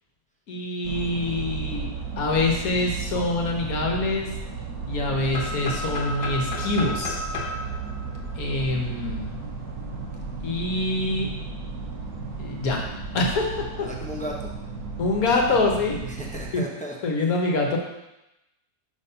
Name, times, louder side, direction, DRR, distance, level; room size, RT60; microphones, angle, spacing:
voice 1, 0.5-1.9 2.2-4.3 4.9-7.2 8.4-9.4 10.4-11.3 12.4-12.8 13.1-13.9 15.0-16.0 16.5-16.6 17.0-17.8, left 2 dB, 65° left, 0 dB, 1.5 m, -25 dB
sound 1, 0.8-16.5, right 4 dB, 65° right, 1.6 m, -34 dB
sound 2, 5.3-9.2, left 2 dB, 80° left, 1.4 m, -33 dB
voice 2, 13.8-14.5 16.1-17.3, equal, 10° left, -2 dB, 0.5 m, -36 dB
5.8 x 4.1 x 5.4 m, 0.94 s
omnidirectional pair, 1.7 m